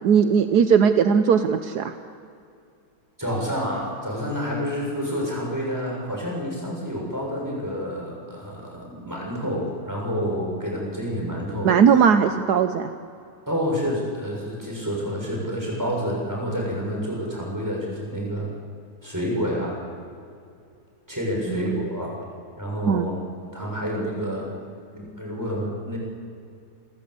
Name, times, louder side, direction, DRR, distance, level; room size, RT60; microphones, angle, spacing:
voice 1, 0.0-1.9 11.6-12.9 21.5-21.8 22.9-23.1, right 7 dB, 75° right, 9 dB, 1.4 m, -19 dB
voice 2, 3.2-11.7 13.5-18.5 19.0-19.7 21.1-22.2 22.6-23.1 23.5-24.5 24.9-26.0, equal, 10° right, -3 dB, 6.8 m, -28 dB
30.0 x 14.0 x 8.3 m, 2.4 s
omnidirectional pair, 1.8 m